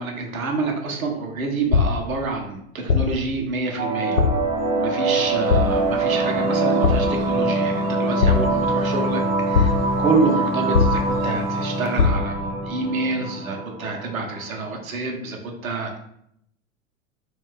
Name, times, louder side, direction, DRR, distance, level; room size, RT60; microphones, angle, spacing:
voice 1, 0.0-4.2 4.7-9.2 9.5-16.0, right 3 dB, 75° right, 2 dB, 0.7 m, -27 dB
sound 1, 1.7-2.2 2.9-3.3 4.2-4.6 5.5-5.9 6.8-7.3 8.2-8.8 9.5-10.0 10.7-11.3 12.0-12.4, left 5 dB, 85° left, 0.7 m, -21 dB
sound 2, 3.8-14.8, right 2 dB, 45° right, 0.9 m, -24 dB
sound 3, 5.2-12.1, left 1 dB, 10° right, 0.3 m, -43 dB
2.3 x 2.2 x 3.6 m, 0.74 s
figure-of-eight pair, 90°, 42 cm